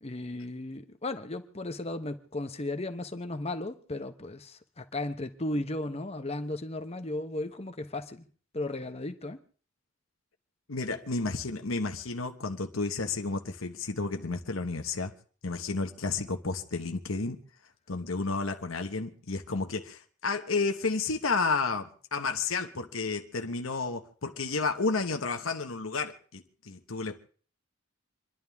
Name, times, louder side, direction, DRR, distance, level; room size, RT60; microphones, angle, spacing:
voice 1, 0.0-8.2 8.5-9.4, left 2 dB, 30° left, 1.1 m, -35 dB
voice 2, 10.7-15.1 15.4-17.4 17.9-27.2, left 3 dB, 90° left, 1.2 m, -31 dB
27.5 x 11.5 x 3.6 m
head